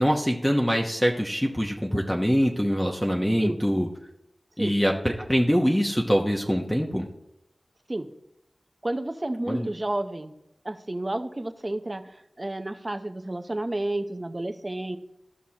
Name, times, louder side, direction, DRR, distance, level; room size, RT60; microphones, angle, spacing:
voice 1, 0.0-3.9 4.6-7.0 9.5-9.7, equal, 10° left, 0 dB, 1.0 m, -24 dB
voice 2, 8.8-10.3 10.6-15.0, right 1 dB, 35° right, 7 dB, 0.7 m, -31 dB
14.5 x 5.9 x 2.9 m, 0.81 s
wide cardioid pair, 50°, 0 cm